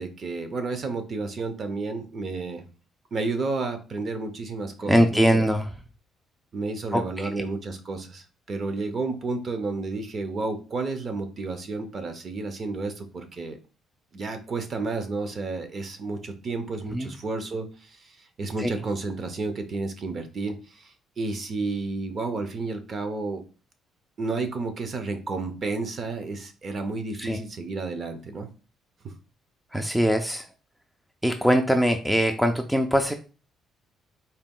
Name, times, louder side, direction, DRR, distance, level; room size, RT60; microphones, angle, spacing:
voice 1, 0.0-2.6 3.1-5.5 6.5-13.6 14.1-18.1 18.4-23.4 24.2-28.5 29.0-29.1, right 3 dB, 40° right, 8 dB, 0.7 m, -31 dB
voice 2, 4.8-5.7 6.9-7.0 7.4-7.5 16.9-17.1 18.6-18.7 27.2-27.4 29.7-30.4 31.2-33.1, equal, ahead, 5 dB, 0.3 m, -22 dB
4.1 x 2.2 x 3.7 m, 0.35 s
cardioid pair, 125°, 0 cm